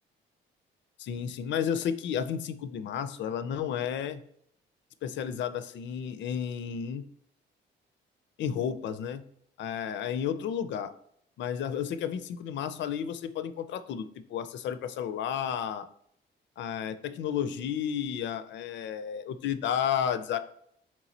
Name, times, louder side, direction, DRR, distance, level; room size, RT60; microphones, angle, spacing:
voice 1, 1.0-4.2 5.0-7.0 8.4-9.2 9.6-10.9 11.4-15.9 16.6-20.4, left 8 dB, 65° left, 11 dB, 0.4 m, -32 dB
4.5 x 3.0 x 2.7 m, 0.68 s
cardioid pair, 90°, 20 cm